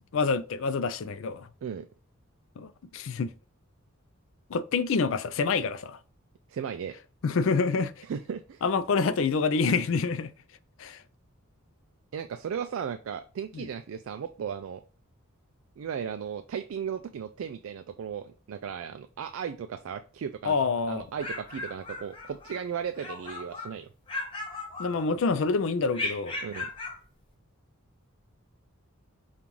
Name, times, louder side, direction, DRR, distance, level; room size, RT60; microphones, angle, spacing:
voice 1, 0.1-1.5 2.6-3.3 4.5-6.0 7.2-7.9 8.6-10.3 10.8-11.0 13.5-13.7 20.4-21.1 24.8-26.4, left 4 dB, 60° left, 0.4 m, -27 dB
voice 2, 6.5-6.9 8.1-8.6 12.1-14.8 15.8-20.6 20.9-23.9 26.4-26.7, right 7 dB, 65° right, 0.3 m, -36 dB
sound 1, 20.9-22.6 22.9-23.7 24.1-25.3 25.9-27.0, left 2 dB, 25° left, 0.8 m, -37 dB
5.3 x 2.4 x 3.0 m
head